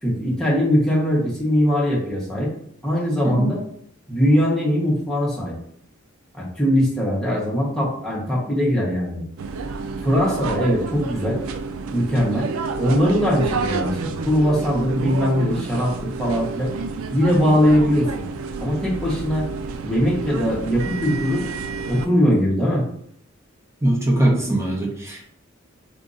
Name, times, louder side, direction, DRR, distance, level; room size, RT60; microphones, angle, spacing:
voice 1, 0.0-2.5 2.8-3.6 4.1-5.6 6.3-9.3 10.0-11.4 11.9-12.5 12.8-16.7 17.1-18.2 18.6-19.5 19.8-21.5 21.9-22.8, equal, ahead, -5 dB, 1.1 m, -21 dB
sound 1, 9.4-22.1, right 4 dB, 90° right, 0.4 m, -29 dB
voice 2, 23.8-25.3, right 1 dB, 15° right, -2 dB, 0.9 m, -21 dB
3.7 x 2.8 x 3.9 m, 0.66 s
head